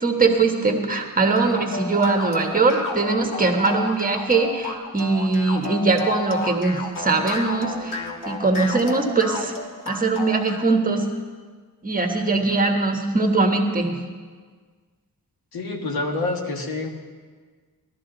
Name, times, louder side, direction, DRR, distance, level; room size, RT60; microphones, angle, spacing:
voice 1, 0.0-8.0 8.3-9.5 9.8-11.0 11.8-14.0, right 3 dB, 25° right, 3 dB, 1.3 m, -21 dB
sound 1, 1.4-10.7, left 2 dB, 60° left, 1.6 m, -32 dB
voice 2, 15.5-16.9, left 2 dB, 80° left, 2 dB, 1.8 m, -27 dB
17.0 x 12.5 x 4.0 m, 1.5 s
wide cardioid pair, 140°, 36 cm